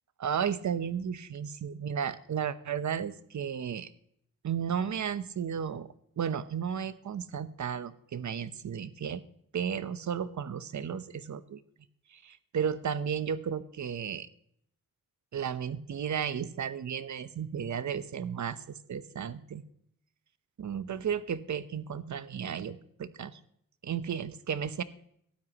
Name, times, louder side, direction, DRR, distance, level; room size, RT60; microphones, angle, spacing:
voice 1, 0.2-3.9 4.4-5.9 6.2-9.2 9.5-11.6 12.1-14.3 15.3-19.6 20.6-23.4 23.8-24.8, right 8 dB, 55° right, 13 dB, 0.9 m, -34 dB
17.5 x 13.0 x 3.0 m, 0.70 s
cardioid pair, 100°, 34 cm